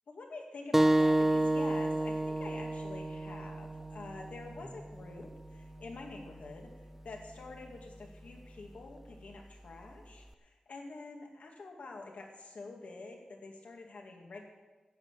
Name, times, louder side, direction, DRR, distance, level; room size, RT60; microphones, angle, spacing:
voice 1, 0.1-6.7 7.0-14.4, left 3 dB, 80° left, 2 dB, 2.2 m, -47 dB
sound 1, 0.7-5.9, right 1 dB, 10° right, 0.4 m, -30 dB
11.0 x 8.8 x 7.5 m, 1.2 s
wide cardioid pair, 110°, 2 cm